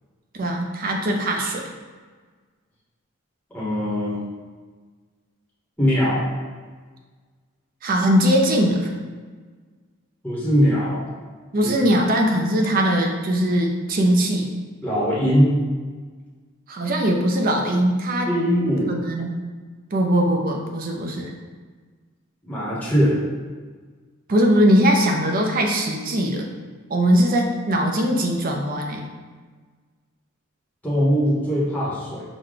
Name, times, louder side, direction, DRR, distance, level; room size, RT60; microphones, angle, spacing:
voice 1, 0.3-1.6 7.8-8.9 11.5-14.5 16.7-18.3 18.9-19.4 19.9-21.3 24.3-26.5 26.9-29.0, equal, 40° right, 2 dB, 0.5 m, -20 dB
voice 2, 3.5-4.2 5.8-6.2 10.2-11.0 11.6-11.7 14.8-15.6 18.3-18.9 22.4-23.2 30.8-32.2, equal, 5° left, -8 dB, 0.9 m, -21 dB
4.9 x 2.2 x 3.8 m, 1.5 s
head